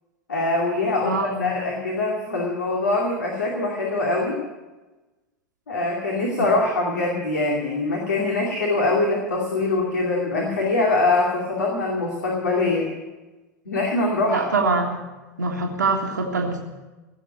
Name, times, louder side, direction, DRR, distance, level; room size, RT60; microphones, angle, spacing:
voice 1, 0.3-4.4 5.7-12.9 13.7-14.5, left 2 dB, 75° left, -1 dB, 2.5 m, -23 dB
voice 2, 1.0-1.5 14.3-15.0 15.4-16.6, right 3 dB, 80° right, 1 dB, 1.7 m, -24 dB
17.0 x 7.5 x 9.2 m, 1.1 s
figure-of-eight pair, 85°, 10 cm